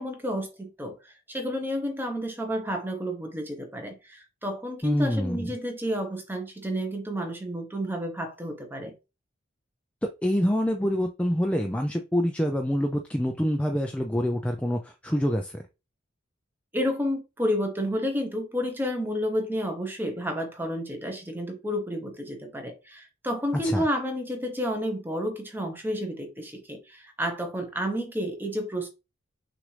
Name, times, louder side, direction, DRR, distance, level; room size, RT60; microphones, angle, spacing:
voice 1, 0.0-8.9 16.7-28.9, equal, 10° right, 0.9 m, -30 dB
voice 2, 4.8-5.5 10.0-15.6 23.5-23.9, equal, 5° left, 0.3 m, -26 dB
6.1 x 2.6 x 3.2 m
head